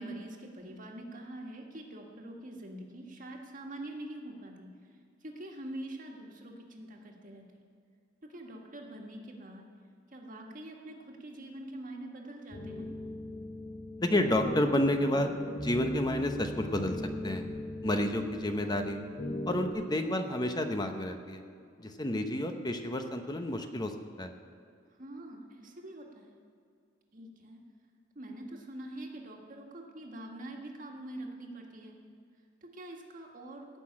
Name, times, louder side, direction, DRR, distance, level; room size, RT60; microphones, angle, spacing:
voice 1, 0.0-4.7 5.2-7.6 8.3-9.7 10.1-12.9 18.5-18.7 25.0-26.3 27.1-27.6 28.1-32.0 32.6-33.7, right 1 dB, 45° right, 1 dB, 1.7 m, -44 dB
sound 1, 12.5-19.7, left 1 dB, 55° left, 2.3 m, -39 dB
voice 2, 14.0-17.4 17.8-19.0 19.5-21.4 21.8-24.3, left 1 dB, 20° left, 6 dB, 0.9 m, -30 dB
17.5 x 6.1 x 8.7 m, 2.3 s
head